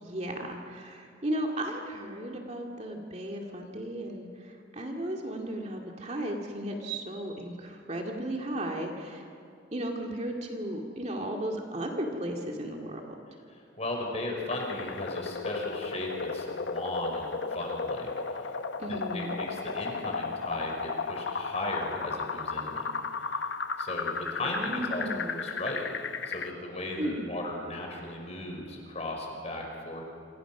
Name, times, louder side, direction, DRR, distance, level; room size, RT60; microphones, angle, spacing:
voice 1, 0.0-9.3 9.7-13.0 18.8-19.4 24.4-25.5 27.0-27.4, right 1 dB, 35° right, 1 dB, 2.4 m, -35 dB
voice 2, 13.5-18.1 18.5-18.6 18.9-22.9 23.8-25.8 26.3-30.0, left 1 dB, 35° left, 1 dB, 5.5 m, -36 dB
sound 1, 14.5-26.5, left 4 dB, 70° left, 1.0 m, -34 dB
27.5 x 27.0 x 6.2 m, 2.4 s
head